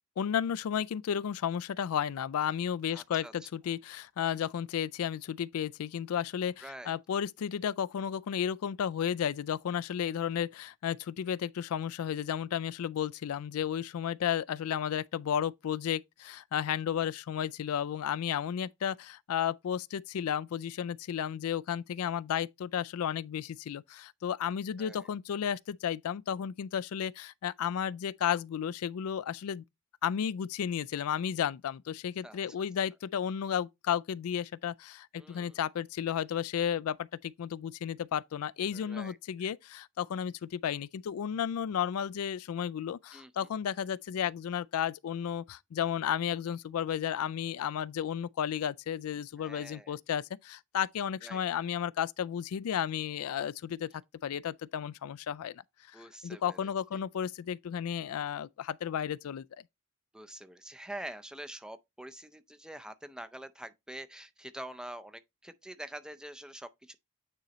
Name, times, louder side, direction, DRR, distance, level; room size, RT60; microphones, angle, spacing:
voice 1, 0.2-29.6 30.0-53.9 54.2-55.6 55.9-59.5, left 9 dB, 80° left, 0.3 m, -33 dB
voice 2, 2.9-3.5 6.6-7.0 24.8-25.1 32.2-32.4 35.2-35.6 38.7-39.5 43.1-43.5 49.4-49.9 51.2-51.4 55.9-56.7 60.1-67.0, right 1 dB, 5° right, 0.5 m, -46 dB
9.1 x 4.0 x 3.0 m
head